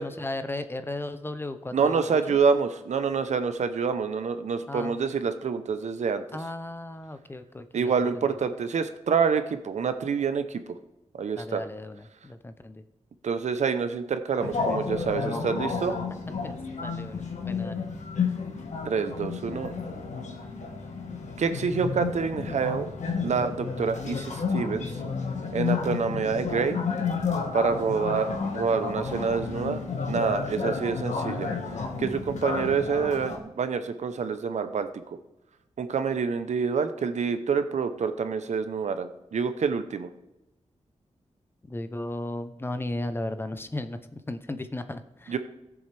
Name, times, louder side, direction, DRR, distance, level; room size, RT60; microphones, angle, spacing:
voice 1, 0.0-2.4 4.7-5.0 6.3-8.4 11.4-12.8 16.4-16.5 16.8-17.8 41.7-45.4, left 2 dB, 20° left, 10 dB, 0.6 m, -35 dB
voice 2, 1.7-6.2 7.7-10.8 11.2-11.6 13.2-15.9 18.8-19.7 21.4-22.9 23.2-24.9 25.5-26.8 27.5-31.5 32.0-35.2 35.8-40.1 45.3-45.4, right 5 dB, 75° right, 10 dB, 0.8 m, -27 dB
sound 1, 14.4-33.4, left 5 dB, 85° left, 1.5 m, -31 dB
17.5 x 7.2 x 3.4 m, 0.97 s
wide cardioid pair, 155°, 12 cm